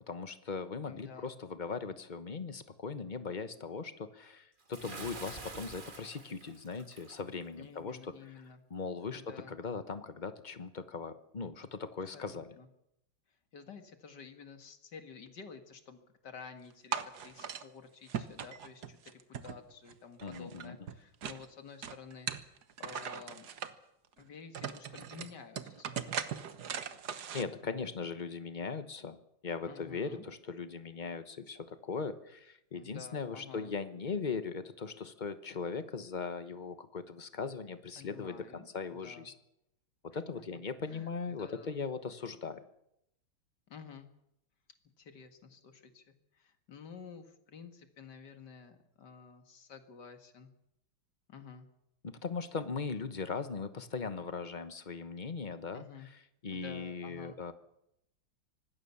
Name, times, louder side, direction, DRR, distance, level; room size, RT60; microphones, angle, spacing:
voice 1, 0.1-8.1 8.7-12.5 20.2-20.8 27.3-29.2 29.4-39.3 40.0-42.6 52.0-55.8 56.4-57.5, left 5 dB, 30° left, 11 dB, 0.8 m, -39 dB
voice 2, 0.9-1.3 7.5-8.6 9.1-9.6 12.1-12.7 13.5-22.5 22.8-23.5 24.2-26.3 29.7-30.2 32.7-33.7 38.0-38.7 39.0-39.3 40.1-40.2 40.9-41.1 41.4-41.8 43.7-44.1 45.0-50.5 51.3-51.7 55.7-56.1 56.5-57.4, left 6 dB, 55° left, 7 dB, 2.5 m, -51 dB
Bathtub (filling or washing) / Splash splatter, 4.7-7.2, right 3 dB, 25° right, 1.6 m, -47 dB
sound 1, 16.9-17.6 18.1-19.9 20.2-21.4 21.8-23.7 24.2-24.3 24.5-27.4, right 7 dB, 55° right, 1.6 m, -39 dB
25.0 x 19.5 x 7.2 m, 0.82 s
omnidirectional pair, 2.2 m